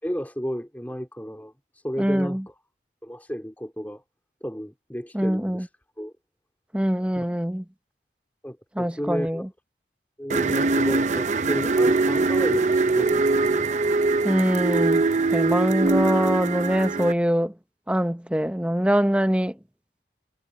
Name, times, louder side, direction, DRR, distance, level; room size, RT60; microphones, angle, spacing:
voice 1, 0.0-2.6 3.0-4.0 4.4-5.7 6.0-6.1 7.2-7.3 8.4-9.5 10.2-13.8, equal, 10° left, 3.0 m, -32 dB
voice 2, 2.0-2.4 5.1-5.7 6.7-7.6 8.8-9.5 14.2-15.0 15.3-17.5 17.9-19.5, equal, 5° right, 0.7 m, -23 dB
sound 1, 10.3-17.1, right 3 dB, 40° right, 0.6 m, -22 dB
head